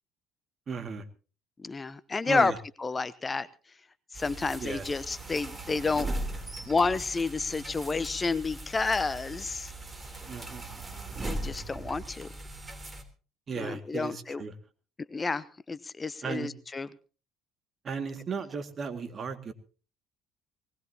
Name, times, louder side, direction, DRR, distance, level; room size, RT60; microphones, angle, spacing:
voice 1, 0.7-1.1 2.3-2.6 4.6-4.8 10.3-10.6 13.5-14.5 16.2-16.5 17.8-19.5, right 5 dB, 40° right, 9 dB, 2.1 m, -35 dB
voice 2, 1.6-2.5 2.8-3.5 4.1-6.1 6.7-9.7 11.3-12.3 13.6-14.4 15.1-16.9, left 4 dB, 25° left, 16 dB, 0.8 m, -30 dB
sound 1, 4.1-13.0, right 2 dB, 20° right, 3.4 m, -39 dB
20.5 x 19.0 x 2.9 m, 0.36 s
hypercardioid pair, 60°, 0 cm